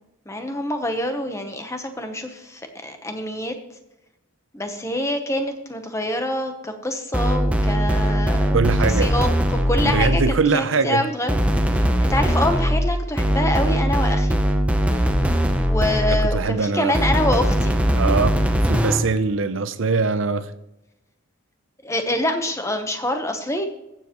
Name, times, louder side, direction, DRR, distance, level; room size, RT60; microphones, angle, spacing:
voice 1, 0.3-3.6 4.5-11.4 11.7-14.4 15.6-17.8 21.8-23.7, left 1 dB, 15° left, 0.9 m, -26 dB
sound 1, 7.1-10.4 11.3-16.4 16.9-19.2, equal, 5° right, 0.6 m, -20 dB
voice 2, 8.5-9.1 9.8-11.1 16.1-17.0 17.9-18.4 18.6-20.5, right 4 dB, 60° right, 0.6 m, -22 dB
15.5 x 7.4 x 3.0 m
head